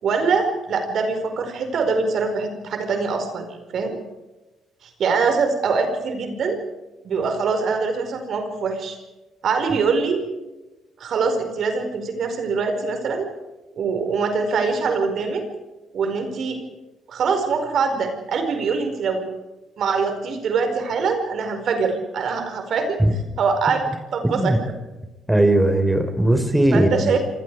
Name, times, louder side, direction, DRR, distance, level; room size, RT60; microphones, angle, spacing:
voice 1, 0.0-4.0 4.8-6.6 7.0-9.0 9.4-10.2 11.0-13.3 13.7-15.4 15.9-16.6 17.1-19.2 19.8-23.0 23.4-23.9 24.1-24.6 26.7-27.2, right 5 dB, 60° right, 6 dB, 4.9 m, -23 dB
voice 2, 25.3-27.2, right 1 dB, 10° right, 7 dB, 4.5 m, -18 dB
27.5 x 24.5 x 4.9 m, 1.1 s
hypercardioid pair, 50°, 0 cm